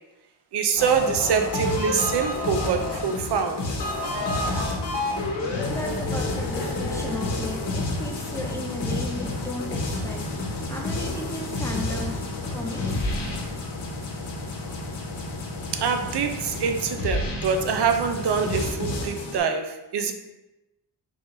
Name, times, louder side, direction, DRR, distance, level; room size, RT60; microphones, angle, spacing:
voice 1, 0.5-3.8 15.7-20.1, right 6 dB, 65° right, 6 dB, 0.6 m, -25 dB
sound 1, 0.8-19.4, left 2 dB, 70° left, 1.0 m, -29 dB
voice 2, 5.4-10.2 10.6-12.2 12.5-13.0 13.5-13.8 14.6-14.7, left 1 dB, 5° left, 0 dB, 0.5 m, -35 dB
4.8 x 3.9 x 2.6 m, 0.98 s
wide cardioid pair, 115°, 44 cm